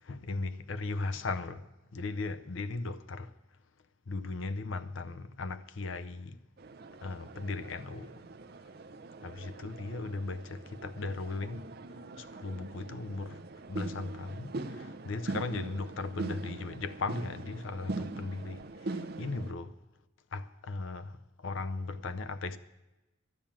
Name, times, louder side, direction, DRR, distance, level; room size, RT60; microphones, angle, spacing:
voice 1, 0.0-3.3 4.1-6.4 7.0-8.1 9.2-11.6 12.2-13.4 13.7-19.8 20.3-22.6, left 3 dB, 80° left, 0.6 m, -37 dB
sound 1, 6.6-19.5, right 2 dB, 55° right, 0.6 m, -42 dB
12.5 x 8.8 x 7.3 m
head